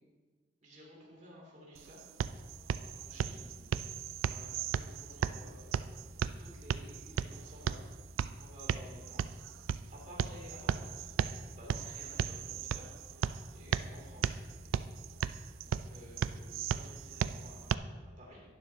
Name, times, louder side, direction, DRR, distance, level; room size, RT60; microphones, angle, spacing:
voice 1, 0.6-2.0 2.8-3.5 4.2-7.9 8.3-9.2 9.9-11.1 11.5-14.4 15.6-18.4, equal, 40° right, -4 dB, 2.6 m, -54 dB
sound 1, 1.7-17.7, right 7 dB, 90° right, 0.3 m, -36 dB
11.5 x 9.5 x 2.8 m, 1.3 s
head